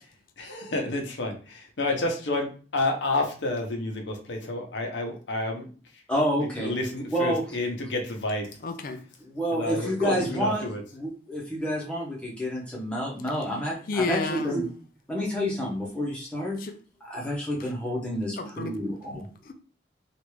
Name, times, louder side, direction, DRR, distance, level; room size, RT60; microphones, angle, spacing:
voice 1, 0.4-5.7 6.6-8.5 9.5-10.8, left 2 dB, 85° left, 0.8 m, -29 dB
voice 2, 6.1-6.7 7.1-7.4 9.2-10.6 10.9-14.7 15.1-16.6 17.1-19.3, equal, 5° left, 0.9 m, -29 dB
voice 3, 8.6-9.0 13.9-14.5 16.6-16.7 18.4-18.7 19.4-19.5, left 3 dB, 50° left, 0.4 m, -30 dB
3.3 x 2.5 x 3.1 m
head